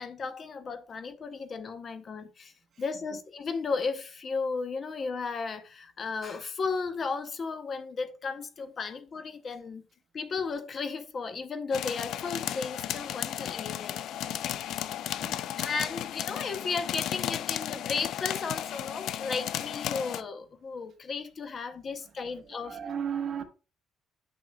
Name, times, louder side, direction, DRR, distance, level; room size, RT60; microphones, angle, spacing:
voice 1, 0.0-2.5 2.8-9.8 10.1-13.9 15.6-22.8, left 4 dB, 35° left, 0.7 m, -34 dB
sound 1, 11.7-20.2, left 11 dB, 65° left, 0.4 m, -34 dB
voice 2, 14.9-15.7 15.9-16.0 22.2-23.4, right 8 dB, 45° right, 1.0 m, -37 dB
9.2 x 6.5 x 2.2 m
cardioid pair, 160°, 0 cm